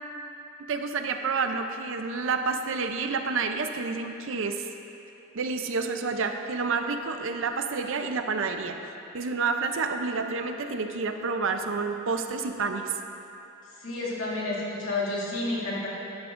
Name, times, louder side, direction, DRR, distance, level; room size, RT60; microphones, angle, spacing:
voice 1, 0.7-4.7 5.3-8.7 9.1-12.9, right 4 dB, 60° right, 6 dB, 0.5 m, -29 dB
voice 2, 13.8-15.9, left 2 dB, 70° left, -7 dB, 2.2 m, -30 dB
12.0 x 10.5 x 2.5 m, 2.9 s
head